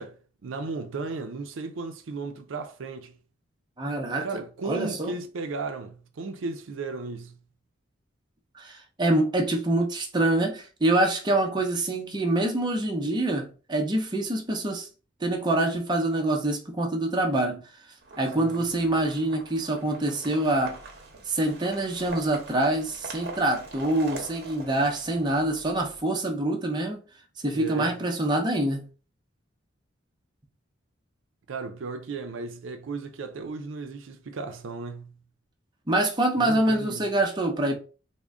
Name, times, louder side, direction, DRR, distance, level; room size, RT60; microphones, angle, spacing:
voice 1, 0.0-3.2 4.2-7.4 18.4-18.6 27.5-28.0 31.5-35.2 36.4-37.1, right 3 dB, 80° right, 0.5 m, -35 dB
voice 2, 3.8-4.3 4.6-5.1 8.5-14.9 15.2-17.6 18.2-20.8 21.3-27.0 27.4-28.8 35.9-37.8, right 1 dB, 20° right, 0.6 m, -25 dB
sound 1, 18.0-26.0, right 3 dB, 50° right, 0.8 m, -43 dB
3.6 x 2.1 x 3.5 m
head